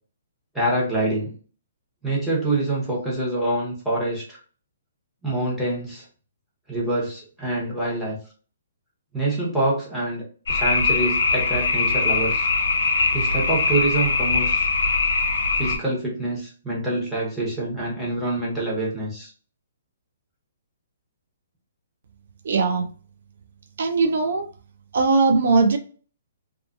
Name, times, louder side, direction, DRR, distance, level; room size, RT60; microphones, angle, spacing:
voice 1, 0.5-1.3 2.0-4.4 5.2-6.0 6.7-8.2 9.1-10.2 10.5-12.5 13.1-14.7 15.6-19.3, right 2 dB, ahead, -7 dB, 1.1 m, -26 dB
sound 1, 10.5-15.8, left 3 dB, 75° left, 0.7 m, -22 dB
voice 2, 22.4-22.9 23.8-24.5 24.9-25.8, right 4 dB, 65° right, 6 dB, 0.4 m, -19 dB
2.6 x 2.4 x 2.5 m, 0.41 s
hypercardioid pair, 150°, 0 cm